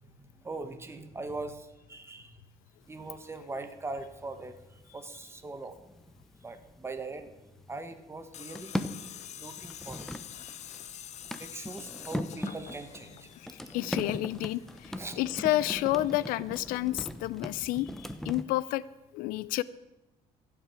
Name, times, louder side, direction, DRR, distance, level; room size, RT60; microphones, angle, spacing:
voice 1, 0.0-2.4 2.9-4.6 4.9-5.8 6.4-7.3 7.7-8.7 9.4-10.1 11.4-13.3 15.0-15.2, right 3 dB, 20° right, 9 dB, 1.3 m, -41 dB
sound 1, 2.9-18.4, left 1 dB, 5° left, 0.8 m, -40 dB
Tools, 8.3-16.1, left 10 dB, 55° left, 0.7 m, -47 dB
voice 2, 13.5-18.8 19.1-19.6, left 16 dB, 90° left, 19 dB, 0.5 m, -30 dB
15.5 x 6.0 x 9.0 m, 1.0 s
cardioid pair, 115°, 14 cm